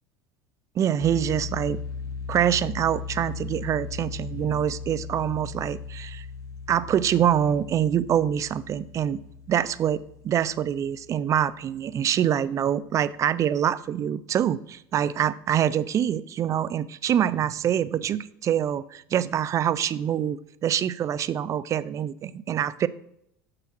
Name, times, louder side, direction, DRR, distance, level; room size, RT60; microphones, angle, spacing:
voice 1, 0.8-1.8 2.3-6.2 6.7-9.2 9.5-22.9, right 10 dB, 35° right, 17 dB, 0.4 m, -25 dB
sound 1, 1.0-11.9, left 5 dB, 35° left, 1.8 m, -38 dB
6.5 x 5.8 x 6.1 m, 0.75 s
supercardioid pair, 115°, 10 cm